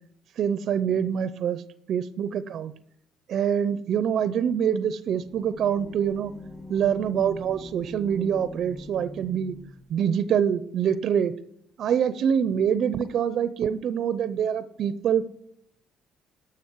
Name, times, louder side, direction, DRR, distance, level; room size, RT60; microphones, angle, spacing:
voice 1, 0.4-1.6 1.9-2.7 3.3-6.3 6.7-9.6 9.9-11.3 11.8-15.2, right 8 dB, 60° right, 14 dB, 0.6 m, -25 dB
sound 1, 5.1-9.9, left 1 dB, 15° left, 1.2 m, -42 dB
12.5 x 6.2 x 4.6 m, 0.72 s
supercardioid pair, 65°, 0 cm